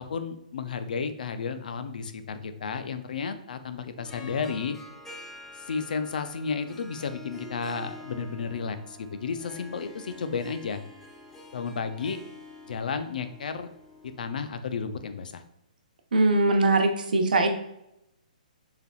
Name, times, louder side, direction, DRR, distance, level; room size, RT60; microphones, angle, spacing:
voice 1, 0.0-4.8 5.6-10.8 11.5-12.2 12.7-13.7 14.2-15.4, left 5 dB, 75° left, 10 dB, 0.5 m, -32 dB
Harp, 4.0-14.3, left 2 dB, 5° left, 0.5 m, -47 dB
voice 2, 16.1-17.5, right 2 dB, 85° right, 5 dB, 0.8 m, -21 dB
4.6 x 3.4 x 2.3 m, 0.81 s
hypercardioid pair, 160°, 5 cm